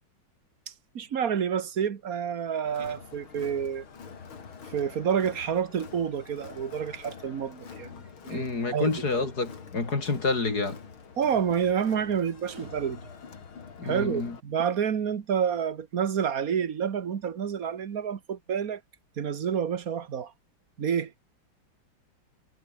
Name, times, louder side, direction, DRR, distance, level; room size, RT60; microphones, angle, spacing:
voice 1, 0.7-3.9 4.7-8.5 8.7-8.9 9.2-9.3 11.2-13.0 13.8-18.8 19.2-20.3 20.8-21.1, right 8 dB, 45° right, 1.7 m, -29 dB
Crowd, 2.6-14.4, left 6 dB, 85° left, 3.5 m, -46 dB
voice 2, 8.3-10.8 13.8-14.4, left 3 dB, 50° left, 3.9 m, -28 dB
omnidirectional pair, 2.2 m